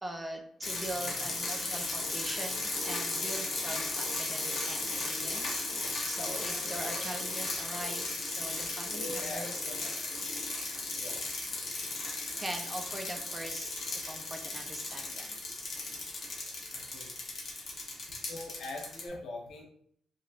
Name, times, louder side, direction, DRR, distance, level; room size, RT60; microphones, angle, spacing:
voice 1, 0.0-9.5 12.4-15.3, right 1 dB, 15° right, 3 dB, 0.5 m, -42 dB
sound 1, 0.6-19.0, left 2 dB, 40° left, 0.9 m, -36 dB
voice 2, 6.2-7.1 8.9-10.1 10.9-11.2 16.7-17.1 18.1-19.6, left 2 dB, 65° left, 0 dB, 1.0 m, -43 dB
3.1 x 2.9 x 2.4 m, 0.63 s
cardioid pair, 90°, 0 cm